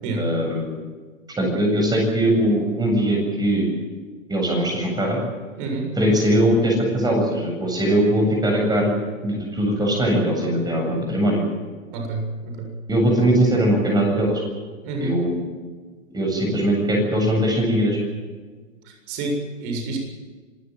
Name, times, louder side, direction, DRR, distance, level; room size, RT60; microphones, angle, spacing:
voice 1, 0.2-0.8 1.4-3.7 4.3-5.2 5.9-8.9 9.2-11.4 12.9-14.4 15.0-15.4 16.1-18.0, right 1 dB, 10° right, 1 dB, 7.8 m, -20 dB
voice 2, 11.9-12.7 14.8-15.1 18.9-20.0, right 2 dB, 40° right, 3 dB, 7.4 m, -28 dB
27.0 x 16.5 x 7.8 m, 1.4 s
hypercardioid pair, 135°, 41 cm